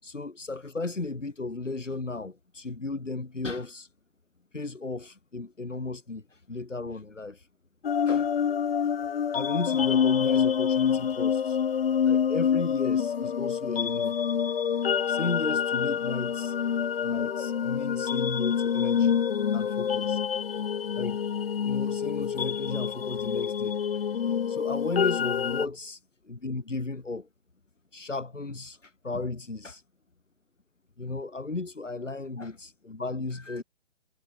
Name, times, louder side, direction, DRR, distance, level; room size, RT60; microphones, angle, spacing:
voice 1, 0.0-3.9 4.5-7.5 8.1-8.3 9.3-11.6 12.0-14.1 15.1-16.5 17.0-19.2 19.5-20.2 20.9-21.3 21.6-23.8 24.5-27.3 27.9-29.8 31.0-33.6, left 3 dB, 85° left, 7.8 m, -35 dB
sound 1, 7.8-25.7, left 7 dB, 50° left, 3.5 m, -27 dB
figure-of-eight pair, 145°, 36 cm